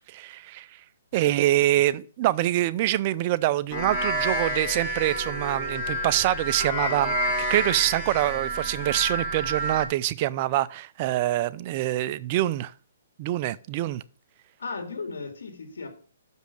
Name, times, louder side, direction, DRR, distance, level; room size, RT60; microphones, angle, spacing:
voice 1, 0.1-0.8 1.1-7.2 7.5-12.7 13.2-14.0, right 15 dB, 35° right, 0.4 m, -25 dB
voice 2, 1.1-1.8 14.6-15.9, left 4 dB, 85° left, 2.3 m, -37 dB
sound 1, 3.7-9.9, right 1 dB, 15° left, 2.7 m, -29 dB
6.3 x 5.3 x 6.5 m
hypercardioid pair, 150°, 0 cm